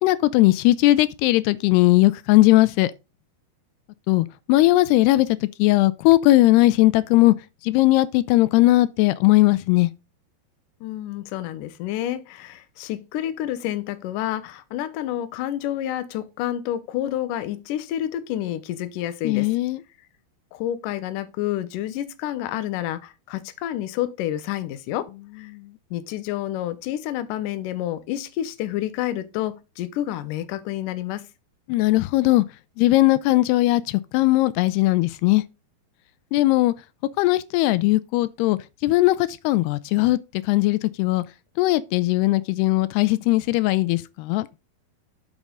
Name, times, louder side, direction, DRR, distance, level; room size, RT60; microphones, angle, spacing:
voice 1, 0.0-2.9 4.1-5.3 5.6-7.3 7.6-9.9 19.2-19.8 25.5-25.7 31.7-32.5 32.8-35.4 36.3-36.7 37.2-40.2 40.5-41.2 41.6-44.5, left 18 dB, 90° left, 2.7 m, -19 dB
voice 2, 10.8-19.5 20.5-25.1 25.4-25.5 25.9-31.2, left 12 dB, 70° left, 2.1 m, -29 dB
8.2 x 7.2 x 3.8 m
omnidirectional pair, 4.6 m